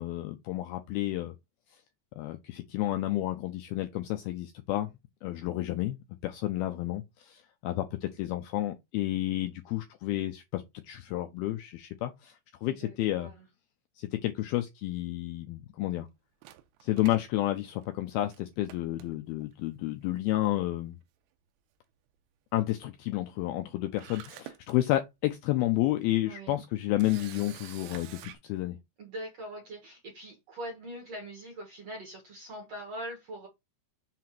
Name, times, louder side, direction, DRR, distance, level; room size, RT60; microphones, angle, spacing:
voice 1, 0.0-1.3 2.2-4.9 5.2-13.3 14.0-16.1 16.8-21.0 22.5-28.8, left 15 dB, 85° left, 2.2 m, -31 dB
voice 2, 12.6-13.5 26.3-26.6 29.0-33.5, right 1 dB, 55° right, 1.8 m, -42 dB
Camera, 16.4-18.0 18.3-18.4 18.7-19.5 20.4-20.7 21.0-21.1 23.6-23.7 24.0-24.7 25.3-25.4 27.0-28.4, right 12 dB, 85° right, 2.9 m, -48 dB
7.4 x 2.8 x 5.9 m
omnidirectional pair, 5.1 m